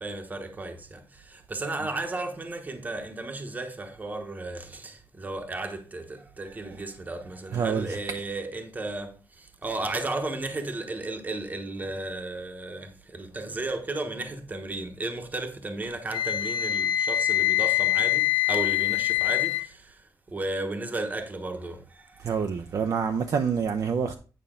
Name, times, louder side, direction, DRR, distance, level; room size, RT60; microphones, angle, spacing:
voice 1, 0.0-20.0 20.3-22.3, right 2 dB, 20° right, 1.0 m, -34 dB
voice 2, 7.5-8.0 22.2-24.1, right 6 dB, 50° right, 0.6 m, -27 dB
Wind instrument woodwind instrument, 16.1-19.6, left 14 dB, 80° left, 1.0 m, -24 dB
9.1 x 5.5 x 3.7 m
wide cardioid pair, 155°, 8 cm